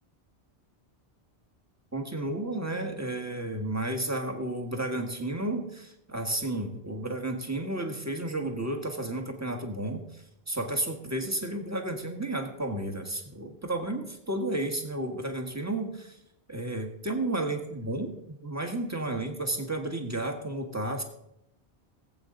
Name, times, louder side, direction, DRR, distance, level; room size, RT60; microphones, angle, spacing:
voice 1, 1.9-16.2 16.5-18.1 18.4-21.0, right 1 dB, 15° right, 3 dB, 1.6 m, -32 dB
19.0 x 8.2 x 4.0 m, 0.82 s
omnidirectional pair, 1.1 m